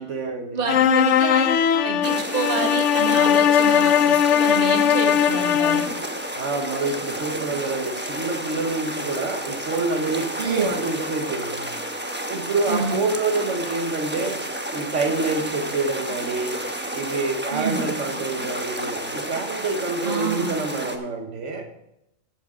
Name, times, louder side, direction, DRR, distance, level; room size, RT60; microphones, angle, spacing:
voice 1, 0.0-0.6 6.3-11.6 12.3-21.7, right 3 dB, 80° right, 4 dB, 1.5 m, -27 dB
voice 2, 0.5-1.5 1.8-5.9 10.4-10.7 12.7-13.0 17.5-17.9 20.0-20.6, right 4 dB, 50° right, 4 dB, 1.5 m, -28 dB
sound 1, 0.7-6.0, left 9 dB, 80° left, 0.9 m, -19 dB
sound 2, 2.0-21.0, right 1 dB, 10° right, 1.0 m, -31 dB
14.5 x 8.5 x 3.7 m, 0.85 s
omnidirectional pair, 1.2 m